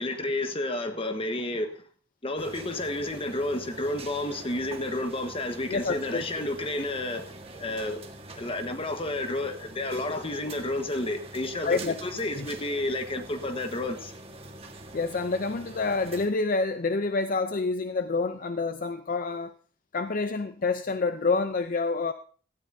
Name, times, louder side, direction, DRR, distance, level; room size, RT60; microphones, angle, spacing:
voice 1, 0.0-1.8 2.2-7.2 7.6-8.0 8.4-14.1, left 1 dB, 30° left, 1.3 m, -31 dB
sound 1, 2.4-16.3, right 2 dB, 30° right, 1.6 m, -44 dB
voice 2, 5.7-6.2 11.6-12.0 12.4-12.5 14.9-19.5 19.9-22.1, left 3 dB, 45° left, 0.6 m, -27 dB
17.5 x 13.5 x 2.7 m
head